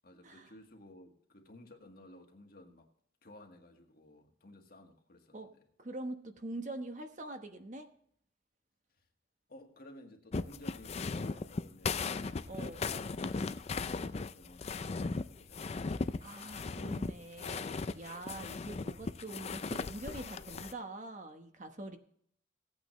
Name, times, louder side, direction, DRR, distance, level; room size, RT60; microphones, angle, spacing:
voice 1, 0.0-2.9 3.2-5.4 9.5-12.9 13.4-16.2, left 1 dB, 55° left, 1.8 m, -55 dB
voice 2, 5.8-7.9 12.5-12.8 16.2-22.0, right 2 dB, 45° right, 1.1 m, -44 dB
sound 1, 10.3-20.7, left 4 dB, 35° left, 0.4 m, -37 dB
16.5 x 8.8 x 3.2 m
head